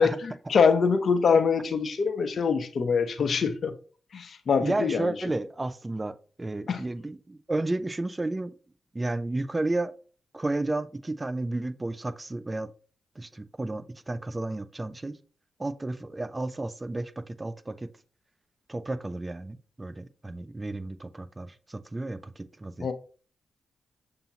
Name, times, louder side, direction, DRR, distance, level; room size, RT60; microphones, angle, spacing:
voice 1, 0.0-3.7 4.1-5.1 6.7-6.8 22.8-22.9, left 5 dB, 65° left, 0.6 m, -24 dB
voice 2, 4.6-6.1 6.4-8.5 8.9-9.9 10.3-12.7 13.2-15.2 15.6-17.9 18.7-22.9, right 2 dB, 25° right, 0.5 m, -32 dB
6.8 x 2.8 x 2.8 m
supercardioid pair, 45°, 0 cm